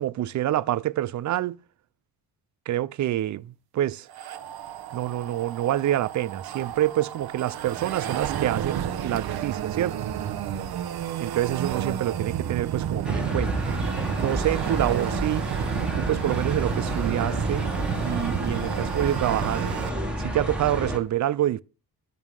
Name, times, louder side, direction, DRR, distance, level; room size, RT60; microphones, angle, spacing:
voice 1, 0.0-1.6 2.7-4.1 4.9-10.0 11.2-13.7 14.2-15.5 16.0-17.7 18.0-19.7 20.2-21.6, right 13 dB, 50° right, 0.5 m, -27 dB
sound 1, 4.1-19.9, right 9 dB, 75° right, 1.0 m, -31 dB
sound 2, 13.0-21.0, right 1 dB, 5° right, 2.3 m, -30 dB
11.0 x 3.8 x 7.3 m
cardioid pair, 115°, 37 cm